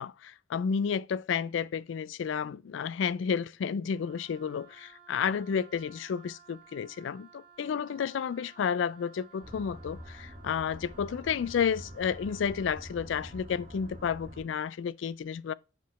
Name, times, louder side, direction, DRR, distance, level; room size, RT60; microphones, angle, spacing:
voice 1, 0.0-15.5, left 7 dB, 75° left, 0.3 m, -31 dB
Wind instrument woodwind instrument, 3.9-13.0, right 7 dB, 5° right, 2.3 m, -57 dB
sound 1, 9.4-14.4, equal, 45° right, 1.6 m, -46 dB
7.5 x 3.8 x 4.1 m
head